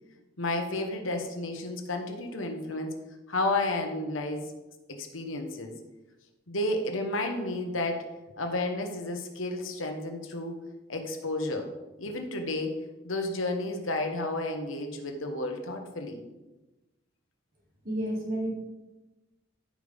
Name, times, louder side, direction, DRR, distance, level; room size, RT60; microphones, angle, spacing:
voice 1, 0.4-2.9 3.3-4.5 4.9-5.7 6.5-8.1 8.4-10.6 10.9-11.7 12.0-12.7 13.0-16.2, left 2 dB, 85° left, 4 dB, 1.3 m, -31 dB
voice 2, 17.8-18.5, right 1 dB, 45° right, -2 dB, 2.4 m, -30 dB
14.0 x 5.2 x 3.6 m, 1.1 s
head